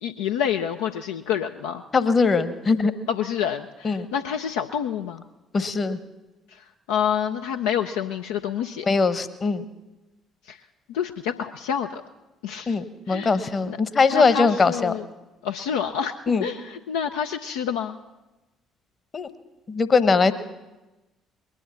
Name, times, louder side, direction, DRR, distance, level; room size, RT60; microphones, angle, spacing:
voice 1, 0.0-1.8 3.1-5.2 6.5-8.9 10.5-10.6 10.9-12.0 12.4-12.8 13.1-13.4 13.7-13.8 14.1-15.0 15.4-16.1 16.4-18.0, left 8 dB, 65° left, 5 dB, 0.5 m, -28 dB
voice 2, 1.9-2.9 3.8-4.1 5.5-6.0 8.8-9.6 12.7-14.9 16.3-16.4 19.1-19.3 19.7-20.3, left 4 dB, 35° left, 13 dB, 1.1 m, -21 dB
20.5 x 10.0 x 7.0 m, 1.0 s
figure-of-eight pair, 50°, 0 cm